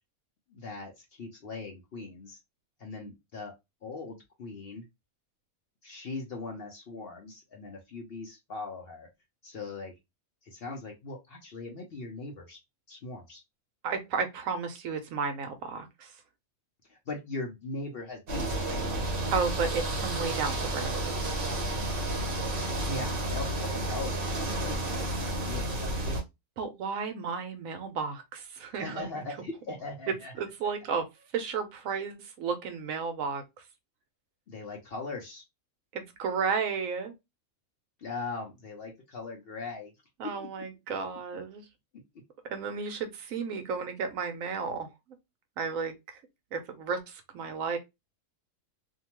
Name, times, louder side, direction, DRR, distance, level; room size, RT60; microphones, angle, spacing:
voice 1, 0.5-2.4 2.8-3.5 3.8-4.8 5.8-9.1 9.4-9.9 10.4-12.6 12.9-13.4 16.9-18.8 22.8-24.9 25.3-26.2 28.8-30.3 34.5-35.4 38.0-39.9 40.2-40.5, left 3 dB, 55° left, 0.7 m, -40 dB
voice 2, 13.8-16.1 19.3-21.2 26.6-29.1 30.4-31.0 31.3-33.4 35.9-37.1 40.2-41.6 42.5-44.9 45.6-45.9 46.5-47.8, right 5 dB, 70° right, 1.0 m, -33 dB
sound 1, 18.3-26.2, right 1 dB, 45° right, 1.0 m, -31 dB
2.7 x 2.2 x 2.9 m
omnidirectional pair, 1.5 m